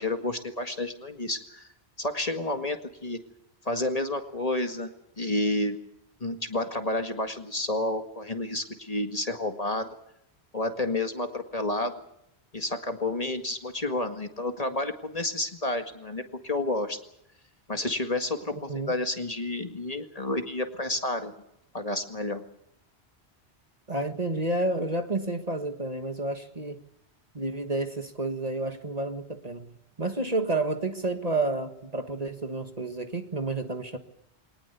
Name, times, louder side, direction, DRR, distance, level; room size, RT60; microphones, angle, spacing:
voice 1, 0.0-1.7 2.0-3.2 3.6-4.9 5.2-5.8 6.2-9.9 10.5-11.9 12.5-17.0 17.7-21.3 21.7-22.4, left 2 dB, 35° left, 6 dB, 2.0 m, -30 dB
voice 2, 23.9-26.8 27.3-34.0, right 2 dB, 35° right, 7 dB, 1.6 m, -30 dB
23.5 x 19.0 x 8.2 m, 0.77 s
omnidirectional pair, 1.1 m